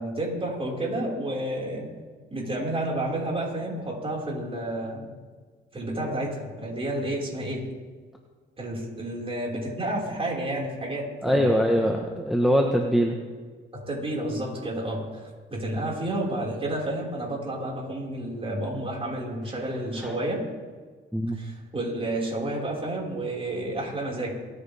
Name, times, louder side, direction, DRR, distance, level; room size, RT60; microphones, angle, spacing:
voice 1, 0.0-1.9 2.3-5.1 5.7-7.7 8.6-11.6 13.7-20.4 21.3-24.3, right 1 dB, 30° right, -3 dB, 5.6 m, -30 dB
voice 2, 11.2-13.2 20.0-20.1 21.1-21.4, equal, ahead, 0 dB, 1.5 m, -23 dB
27.5 x 9.7 x 3.7 m, 1.5 s
cardioid pair, 90°, 20 cm